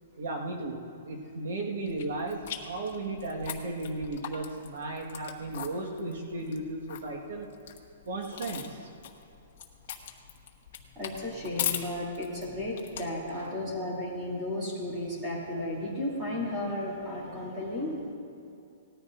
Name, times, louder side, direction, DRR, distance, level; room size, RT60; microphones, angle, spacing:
voice 1, 0.2-7.5 8.0-8.9 13.3-13.5, right 2 dB, 75° right, 0 dB, 1.6 m, -35 dB
sound 1, 1.9-13.5, left 9 dB, 45° left, 1.2 m, -40 dB
voice 2, 10.9-18.0, left 1 dB, 15° right, -5 dB, 2.8 m, -34 dB
18.5 x 13.5 x 2.6 m, 2.7 s
hypercardioid pair, 170°, 0 cm